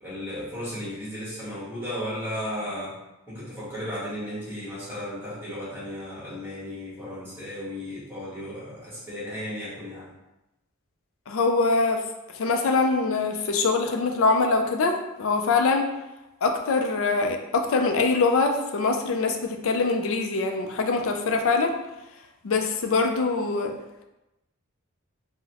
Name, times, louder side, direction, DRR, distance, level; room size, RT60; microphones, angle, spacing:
voice 1, 0.0-3.0 3.3-10.1, equal, 10° right, -9 dB, 1.3 m, -35 dB
voice 2, 11.3-12.0 12.3-15.9 16.4-21.7 22.4-23.7, left 3 dB, 65° left, 4 dB, 0.4 m, -23 dB
3.8 x 2.1 x 2.8 m, 0.95 s
head